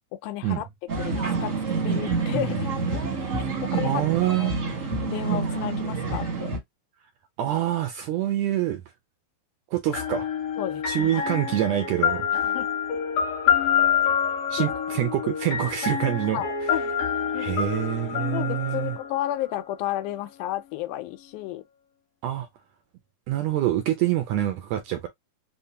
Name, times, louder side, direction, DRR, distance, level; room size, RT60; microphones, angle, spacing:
voice 1, 0.2-0.7 1.0-1.5 1.8-3.1 3.6-4.0 4.4-4.5 5.1-6.5 10.6-11.1 12.4-12.7 14.6-14.7 16.3-16.9 17.3-17.6 18.3-21.6, left 14 dB, 90° left, 2.1 m, -32 dB
sound 1, 0.9-6.6, right 4 dB, 50° right, 0.9 m, -27 dB
voice 2, 3.8-4.5 7.4-8.8 9.7-10.3 10.9-12.5 14.5-16.7 17.3-19.0 22.2-22.5 23.3-25.1, right 13 dB, 80° right, 1.5 m, -26 dB
sound 2, 9.9-19.7, left 8 dB, 60° left, 2.0 m, -27 dB
5.2 x 2.1 x 2.7 m
omnidirectional pair, 3.5 m